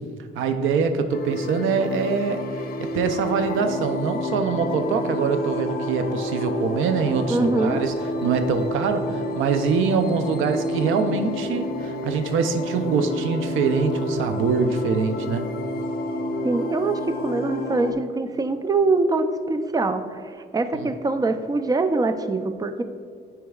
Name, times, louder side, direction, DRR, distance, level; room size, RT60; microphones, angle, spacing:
voice 1, 0.4-7.9 8.2-15.5 20.7-20.9, right 5 dB, 85° right, 8 dB, 0.5 m, -24 dB
sound 1, 1.1-17.9, left 1 dB, 50° left, 0.6 m, -29 dB
voice 2, 7.3-7.8 16.4-22.8, right 3 dB, 20° right, 9 dB, 0.4 m, -23 dB
9.4 x 4.6 x 2.3 m, 2.2 s
cardioid pair, 90°, 20 cm